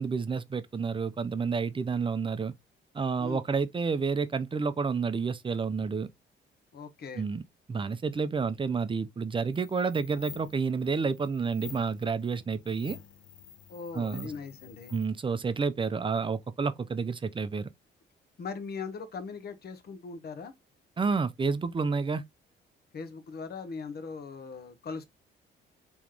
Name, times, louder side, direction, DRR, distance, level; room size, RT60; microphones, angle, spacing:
voice 1, 0.0-2.5 2.9-6.1 7.2-7.4 7.7-13.0 13.9-14.3 14.9-17.7 21.0-22.2, right 5 dB, 25° right, 0.5 m, -30 dB
voice 2, 6.7-7.3 13.7-14.9 18.4-20.5 22.9-25.0, left 5 dB, 55° left, 1.0 m, -40 dB
sound 1, 9.5-15.1, left 9 dB, 75° left, 0.7 m, -49 dB
3.6 x 3.0 x 3.2 m
cardioid pair, 90°, 20 cm